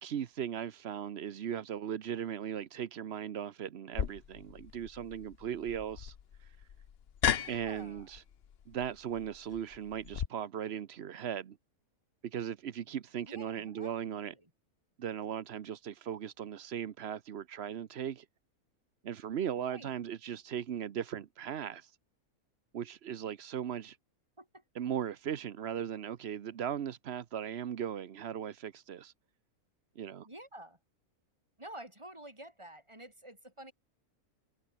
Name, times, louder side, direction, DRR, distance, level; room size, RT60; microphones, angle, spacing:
voice 1, 0.0-6.7 7.5-8.2 8.7-11.6 12.2-14.3 15.0-18.3 19.0-22.0 22.7-24.0 24.7-29.1 30.0-30.3, right 9 dB, 50° right, 1.0 m, -38 dB
sound 1, 3.9-10.3, left 8 dB, 50° left, 1.0 m, -37 dB
voice 2, 7.3-8.1 13.2-14.5 19.6-19.9 24.4-24.6 30.2-30.8 31.6-33.7, right 1 dB, 20° right, 4.4 m, -50 dB
omnidirectional pair, 1.5 m